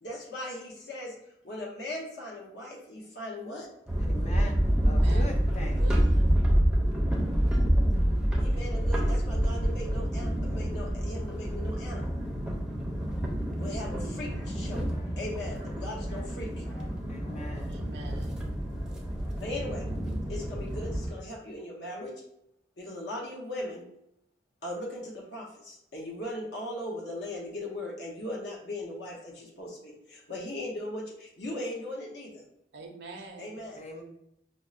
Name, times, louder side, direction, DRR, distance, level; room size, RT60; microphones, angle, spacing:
voice 1, 0.0-3.7 8.4-12.2 13.6-14.9 15.2-16.6 19.4-19.9 20.3-22.1 22.8-23.8 24.6-32.4 33.4-33.8, left 1 dB, 80° left, -2 dB, 0.8 m, -38 dB
sound 1, 3.9-21.1, equal, 5° right, 0.4 m, -28 dB
voice 2, 4.0-5.9 17.1-17.8 33.7-34.0, left 1 dB, 40° left, 2 dB, 0.5 m, -41 dB
voice 3, 4.9-5.3 5.8-6.3 17.7-18.4 32.7-33.5, right 3 dB, 65° right, 2 dB, 0.4 m, -45 dB
sound 2, 14.3-14.5 14.9-15.2 15.5-15.8 16.1-16.9 17.2-17.6, left 1 dB, 55° left, 1.5 m, -53 dB
5.2 x 2.0 x 2.4 m, 0.78 s
head